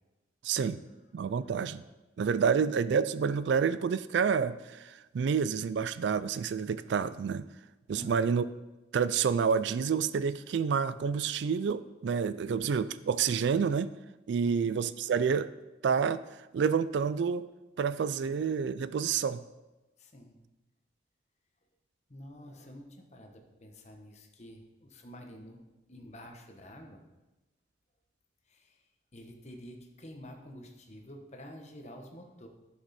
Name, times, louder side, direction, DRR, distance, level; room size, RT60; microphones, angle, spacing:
voice 1, 0.4-0.8 1.1-1.8 2.2-7.5 7.9-8.4 8.9-13.9 14.3-15.5 15.8-17.5 17.8-19.4, right 6 dB, 70° right, 15 dB, 0.3 m, -29 dB
voice 2, 7.9-8.3 14.4-14.7 18.2-18.4 20.0-20.3 22.1-25.6 25.9-27.0 28.5-32.5, equal, 35° left, 3 dB, 1.1 m, -49 dB
11.0 x 6.2 x 4.2 m, 1.1 s
head